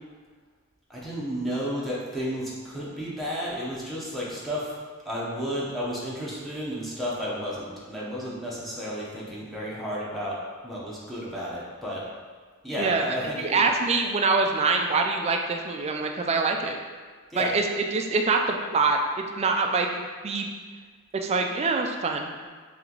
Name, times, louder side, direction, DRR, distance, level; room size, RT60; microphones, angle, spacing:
voice 1, 0.9-4.7 5.0-10.4 10.6-12.0 12.6-13.6 17.3-17.5, equal, ahead, -7 dB, 0.8 m, -32 dB
voice 2, 13.5-16.8 17.3-19.9 20.2-20.5 21.1-22.3, right 4 dB, 30° right, 3 dB, 0.3 m, -25 dB
3.3 x 3.1 x 3.8 m, 1.5 s
head